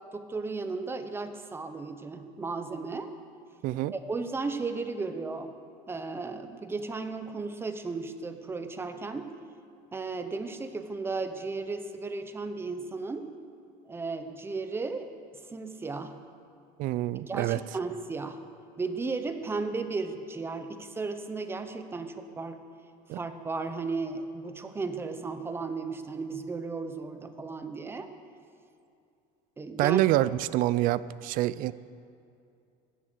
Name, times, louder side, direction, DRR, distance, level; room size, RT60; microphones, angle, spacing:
voice 1, 0.1-3.1 3.9-5.5 5.9-9.3 9.9-13.3 13.9-15.1 15.5-16.2 17.2-18.4 18.8-22.6 23.1-28.1 29.6-30.0, right 4 dB, 15° right, 8 dB, 0.8 m, -35 dB
voice 2, 3.6-3.9 16.8-17.6 23.1-23.2 29.8-31.7, right 15 dB, 50° right, 17 dB, 0.4 m, -26 dB
15.5 x 11.0 x 6.6 m, 2.5 s
cardioid pair, 155°, 18 cm